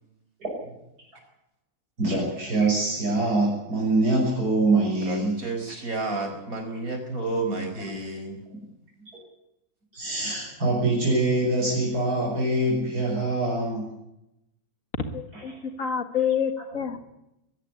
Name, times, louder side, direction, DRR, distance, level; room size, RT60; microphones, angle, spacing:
voice 1, 2.0-5.3 9.9-14.0 15.3-15.4, right 2 dB, 90° right, -3 dB, 7.3 m, -24 dB
voice 2, 5.0-8.4, right 2 dB, 65° right, 5 dB, 5.6 m, -31 dB
voice 3, 15.1-15.5 15.8-17.0, left 8 dB, 55° left, 8 dB, 2.2 m, -27 dB
23.0 x 14.5 x 9.7 m, 0.86 s
omnidirectional pair, 1.6 m